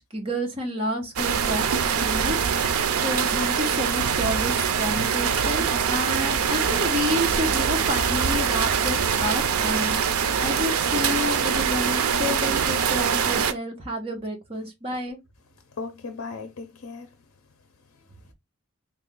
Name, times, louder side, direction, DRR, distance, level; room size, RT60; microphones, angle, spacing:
voice 1, 0.0-2.6 3.0-15.2, left 1 dB, 25° right, 1.2 m, -30 dB
sound 1, 1.2-13.5, right 7 dB, 90° right, 0.5 m, -23 dB
voice 2, 15.6-17.2 17.9-18.3, left 4 dB, 70° left, 0.6 m, -38 dB
3.5 x 2.4 x 3.7 m
head